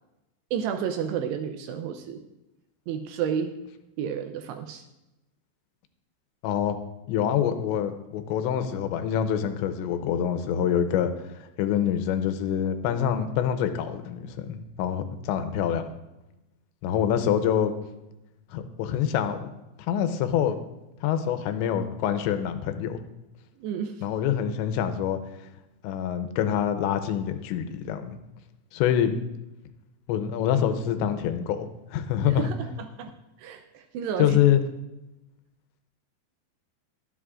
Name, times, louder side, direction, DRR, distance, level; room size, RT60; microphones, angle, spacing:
voice 1, 0.5-2.2 2.9-3.5 4.0-4.8 23.6-24.0 32.3-33.1 33.4-34.4, right 8 dB, 85° right, 6 dB, 2.5 m, -31 dB
voice 2, 6.4-6.8 7.1-15.8 16.8-17.7 18.5-19.4 19.9-20.6 21.0-23.0 24.0-25.2 25.8-28.2 28.7-29.2 30.1-32.5 34.2-34.6, left 9 dB, 85° left, 8 dB, 3.0 m, -26 dB
22.5 x 8.0 x 2.5 m, 0.96 s
omnidirectional pair, 5.2 m